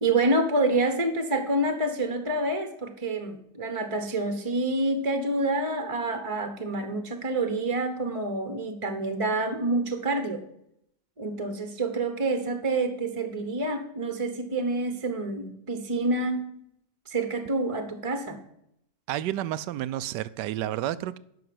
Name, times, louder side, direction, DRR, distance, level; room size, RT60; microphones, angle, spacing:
voice 1, 0.0-10.4 11.2-16.5 17.1-18.4, right 2 dB, 25° right, 0.9 m, -27 dB
voice 2, 19.1-21.2, right 13 dB, 85° right, 1.2 m, -30 dB
10.5 x 6.1 x 7.7 m
omnidirectional pair, 1.8 m